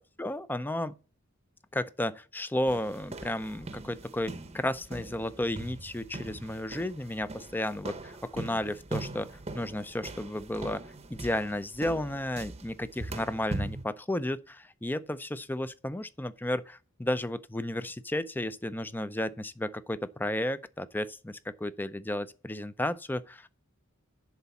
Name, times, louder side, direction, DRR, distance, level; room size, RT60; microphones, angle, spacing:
voice 1, 0.2-0.9 1.7-9.3 9.5-10.8 11.1-23.5, left 1 dB, 10° left, 0.5 m, -33 dB
sound 1, 2.7-13.9, right 2 dB, 30° right, 0.8 m, -41 dB
11.0 x 4.0 x 7.0 m
head